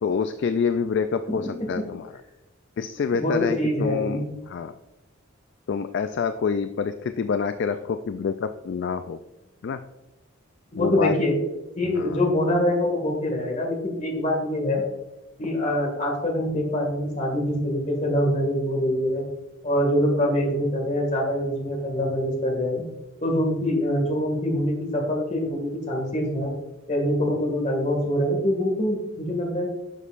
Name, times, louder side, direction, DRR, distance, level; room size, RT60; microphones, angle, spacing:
voice 1, 0.0-2.1 2.8-4.7 5.7-9.2 9.6-9.8 10.8-11.1 11.9-12.2, left 6 dB, 55° left, 9 dB, 0.3 m, -27 dB
voice 2, 3.1-4.3 10.7-11.3 11.8-14.8 15.4-19.2 19.6-22.8 23.2-26.5 26.9-29.7, left 1 dB, 35° left, 1 dB, 2.0 m, -24 dB
10.5 x 6.2 x 2.5 m, 1.0 s
head